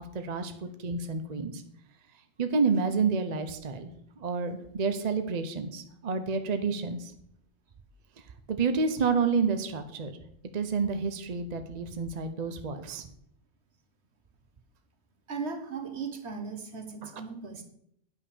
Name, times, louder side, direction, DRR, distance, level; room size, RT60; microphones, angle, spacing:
voice 1, 0.0-1.6 2.4-3.9 4.2-7.1 8.5-10.2 10.5-13.1 17.0-17.1, right 5 dB, 40° right, 8 dB, 0.8 m, -29 dB
voice 2, 15.3-17.7, right 5 dB, 65° right, 7 dB, 1.5 m, -37 dB
9.3 x 5.7 x 6.8 m, 0.73 s
omnidirectional pair, 1.2 m